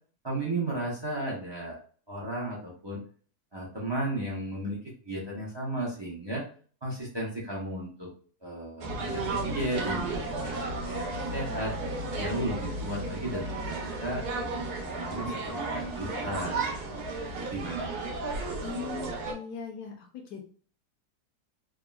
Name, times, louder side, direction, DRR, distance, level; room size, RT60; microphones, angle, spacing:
voice 1, 0.2-1.8 2.1-3.0 3.5-4.8 5.0-6.4 6.8-8.1 8.4-11.7 12.2-14.2 14.8-16.7 17.5-17.9, right 1 dB, 40° right, -4 dB, 0.3 m, -34 dB
sound 1, 8.8-19.3, right 2 dB, 85° right, 1.3 m, -33 dB
voice 2, 18.6-20.4, left 7 dB, 75° left, 0 dB, 1.1 m, -39 dB
3.5 x 2.0 x 2.2 m, 0.43 s
omnidirectional pair, 1.7 m